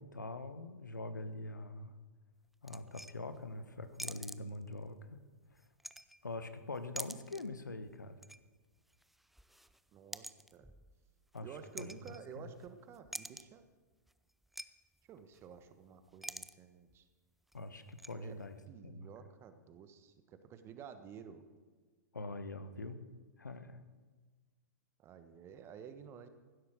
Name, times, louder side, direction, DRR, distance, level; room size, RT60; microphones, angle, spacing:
voice 1, 0.0-1.9 2.6-5.2 6.2-8.2 11.3-12.5 17.5-18.6 18.8-19.1 22.1-23.0 23.4-23.8, left 2 dB, 85° left, 10 dB, 1.3 m, -44 dB
sound 1, 2.7-3.4 3.9-4.9 5.5-6.5 6.7-7.5 7.9-8.5 8.8-12.7 12.9-13.6 14.1-14.2 14.4-14.7 14.9-15.0 15.3-15.7 16.0-16.6 16.9-17.0 17.5-18.1, right 1 dB, ahead, 0.4 m, -48 dB
voice 2, 9.9-10.7 11.4-13.7 15.1-17.1 18.1-18.4 18.7-21.4 25.0-26.3, right 7 dB, 25° right, 10 dB, 1.4 m, -52 dB
16.0 x 11.5 x 6.4 m, 1.4 s
figure-of-eight pair, 110°, 10 cm